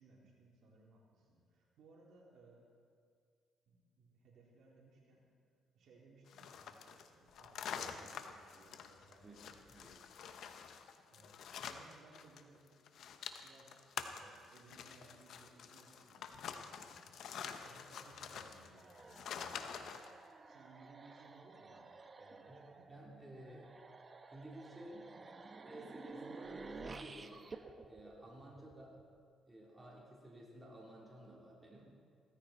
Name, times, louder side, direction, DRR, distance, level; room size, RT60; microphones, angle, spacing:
voice 1, 0.0-2.7 3.7-5.2 5.7-9.6 11.1-12.7 13.4-13.8 14.1-17.1 17.6-20.0 20.4-21.9 22.2-23.0 28.4-28.7, right 2 dB, 70° right, -3 dB, 3.2 m, -63 dB
Wood panel board debris heap scramble dump various, 6.3-12.4 12.7-20.1, left 7 dB, 70° left, 0.9 m, -47 dB
voice 2, 9.2-10.0 22.5-22.6 22.9-23.7 24.3-25.2 25.6-27.4 27.9-29.0 29.5-31.8, right 1 dB, 20° right, -3 dB, 3.7 m, -54 dB
sound 1, 18.8-29.0, right 3 dB, 35° right, 0.9 m, -53 dB
16.5 x 14.5 x 4.3 m, 2.2 s
cardioid pair, 90°, 0 cm